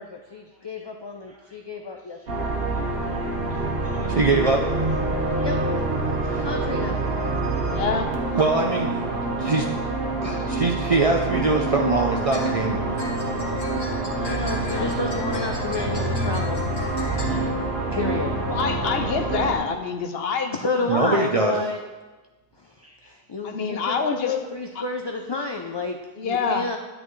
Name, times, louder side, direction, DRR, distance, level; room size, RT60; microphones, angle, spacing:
voice 1, 0.3-2.5 5.4-5.6 6.4-7.0 14.2-16.6 17.9-18.5 20.5-21.8 22.6-22.7 23.1-26.8, left 3 dB, 35° left, 3 dB, 0.4 m, -30 dB
voice 2, 1.3-4.5 4.8-6.7 7.1-7.6 8.1-8.2 8.7-8.8 10.1-10.7 11.6-11.9 12.9-15.2 16.4-16.5 17.0-17.7 22.6-23.4 23.8-23.9, right 1 dB, 15° right, -4 dB, 1.8 m, -46 dB
sound 1, 2.3-19.6, right 2 dB, 70° right, 1.3 m, -26 dB
voice 3, 4.1-4.7 6.2-6.4 8.3-9.1 9.4-9.7 10.2-12.8 20.9-21.6, right 3 dB, 40° right, 1 dB, 0.6 m, -22 dB
voice 4, 7.7-8.1 14.7-14.9 18.5-20.6 21.0-21.2 23.4-24.4 24.8-24.9 26.2-26.7, left 5 dB, 75° left, 6 dB, 0.9 m, -26 dB
sound 2, 12.1-17.4, left 2 dB, 55° left, 1.7 m, -36 dB
10.5 x 9.1 x 3.2 m, 1.2 s
omnidirectional pair, 1.0 m